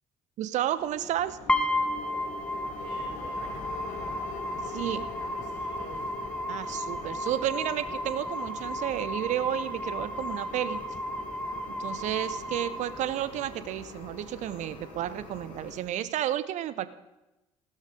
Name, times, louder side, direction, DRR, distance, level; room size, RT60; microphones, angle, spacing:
voice 1, 0.4-1.4 4.7-5.0 6.5-10.8 11.7-16.9, right 12 dB, 50° right, 15 dB, 0.8 m, -31 dB
sound 1, 0.8-15.8, left 4 dB, 55° left, 3.8 m, -43 dB
sound 2, 1.5-13.5, left 1 dB, 5° left, 1.3 m, -33 dB
voice 2, 2.7-4.3 4.5-6.2, right 2 dB, 70° right, -1 dB, 4.0 m, -50 dB
16.0 x 12.5 x 5.1 m, 0.98 s
figure-of-eight pair, 50°, 16 cm